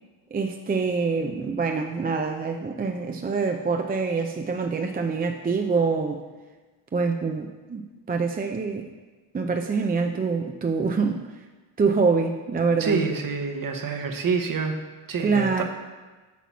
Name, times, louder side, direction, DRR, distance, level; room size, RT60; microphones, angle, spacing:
voice 1, 0.3-6.2 6.9-8.9 9.3-11.2 11.8-13.0 15.2-15.6, right 4 dB, 20° right, 4 dB, 0.4 m, -25 dB
voice 2, 12.8-14.8 15.1-15.6, right 4 dB, 45° right, 5 dB, 1.0 m, -27 dB
8.3 x 3.0 x 5.7 m, 1.3 s
supercardioid pair, 65°, 48 cm